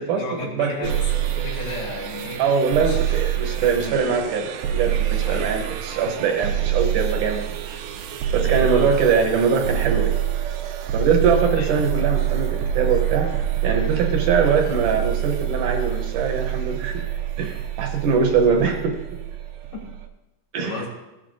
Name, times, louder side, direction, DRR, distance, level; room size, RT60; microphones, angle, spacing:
voice 1, 0.0-2.4 2.8-4.0 5.2-5.5 8.4-8.9 11.6-11.7 18.5-18.6 19.7-19.8 20.6-20.9, left 3 dB, 75° left, -3 dB, 3.9 m, -34 dB
voice 2, 0.5-0.9 2.4-7.6 8.3-10.1 10.9-13.3 13.6-17.0 17.4-18.9 20.5-20.9, right 5 dB, 75° right, 2 dB, 2.2 m, -22 dB
sound 1, 0.8-20.1, right 12 dB, 90° right, 2.5 m, -26 dB
15.5 x 7.7 x 2.5 m, 1.0 s
omnidirectional pair, 4.2 m